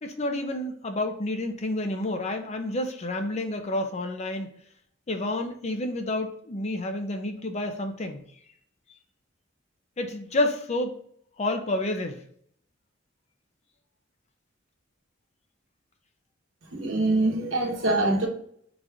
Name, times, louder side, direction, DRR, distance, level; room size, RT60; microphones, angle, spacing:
voice 1, 0.0-4.5 5.1-8.2 10.0-11.0 11.4-12.2, left 1 dB, 35° left, 5 dB, 0.5 m, -29 dB
voice 2, 16.7-18.3, right 2 dB, 80° right, 1 dB, 1.0 m, -24 dB
4.0 x 2.4 x 4.3 m, 0.65 s
head